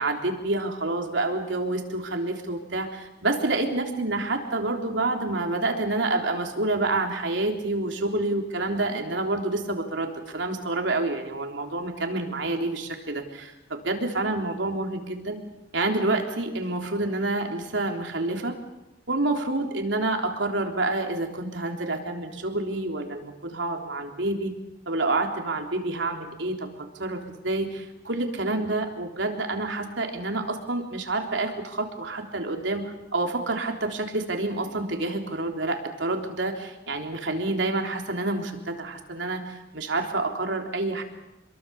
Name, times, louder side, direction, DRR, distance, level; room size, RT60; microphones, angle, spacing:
voice 1, 0.0-15.4 15.7-18.6 19.1-24.6 24.9-41.0, right 2 dB, 75° right, 3 dB, 3.6 m, -28 dB
27.5 x 22.5 x 7.1 m, 0.94 s
head